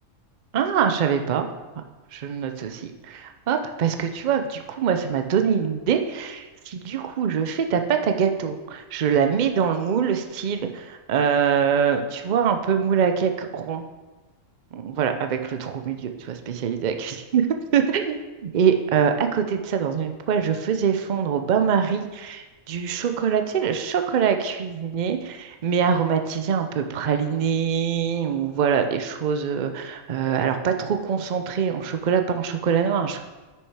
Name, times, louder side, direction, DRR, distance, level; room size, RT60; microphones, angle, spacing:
voice 1, 0.5-1.5 2.1-13.8 14.7-17.5 17.7-33.2, right 7 dB, 90° right, 6 dB, 0.4 m, -24 dB
6.4 x 6.3 x 4.7 m, 1.2 s
omnidirectional pair, 1.5 m